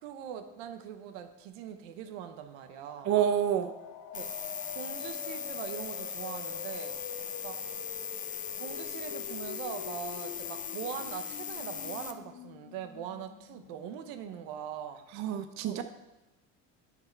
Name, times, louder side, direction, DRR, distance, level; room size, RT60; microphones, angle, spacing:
voice 1, 0.0-3.1 4.1-4.3 4.7-7.6 8.6-15.0 15.6-15.8, right 9 dB, 85° right, 8 dB, 0.9 m, -42 dB
sound 1, 2.6-14.3, left 9 dB, 70° left, 0.8 m, -47 dB
voice 2, 3.1-3.7 15.1-15.8, right 9 dB, 55° right, 8 dB, 0.6 m, -28 dB
sound 2, 4.1-12.1, left 7 dB, 25° left, 0.6 m, -39 dB
8.8 x 6.0 x 4.5 m, 1.0 s
cardioid pair, 120°, 34 cm